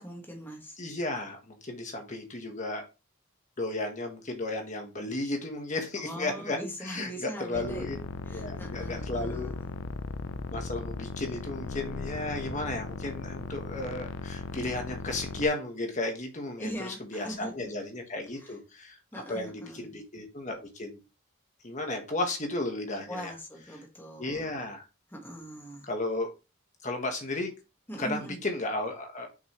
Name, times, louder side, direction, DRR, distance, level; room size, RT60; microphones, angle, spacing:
voice 1, 0.0-0.8 6.0-8.0 8.3-9.7 16.6-17.7 18.4-18.6 19.1-20.0 23.1-24.6 25.1-25.9 27.9-28.4, equal, 10° left, 1.5 m, -41 dB
voice 2, 0.8-2.8 3.6-8.0 8.3-9.5 10.5-19.0 19.3-21.0 21.6-23.3 24.2-24.8 25.8-26.3 26.8-27.5 28.0-29.3, left 2 dB, 35° left, 1.5 m, -34 dB
sound 1, 7.5-15.5, left 3 dB, 65° left, 0.5 m, -37 dB
6.1 x 5.4 x 3.1 m
head